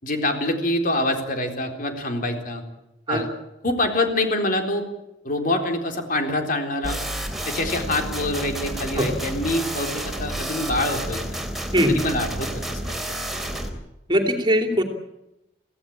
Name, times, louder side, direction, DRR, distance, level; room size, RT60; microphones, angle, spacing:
voice 1, 0.0-2.6 3.1-3.3 3.6-4.8 5.2-7.0 7.5-11.2 11.8-13.0, left 1 dB, 50° left, 4 dB, 3.9 m, -25 dB
sound 1, 6.8-13.7, right 1 dB, ahead, 3.6 m, -30 dB
voice 2, 14.1-14.8, equal, 25° right, 5 dB, 3.0 m, -20 dB
25.0 x 17.0 x 8.7 m, 0.90 s
head